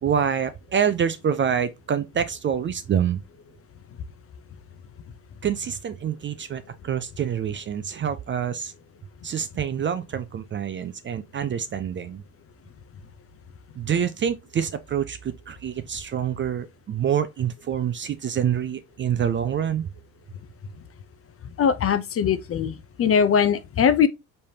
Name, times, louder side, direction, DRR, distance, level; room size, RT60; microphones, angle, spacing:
voice 1, 0.0-3.2 5.4-8.7 9.2-12.2 13.8-19.9, right 8 dB, 30° right, 0.5 m, -26 dB
voice 2, 21.6-24.1, left 7 dB, 30° left, 0.6 m, -21 dB
5.3 x 3.4 x 2.8 m
hypercardioid pair, 75°, 43 cm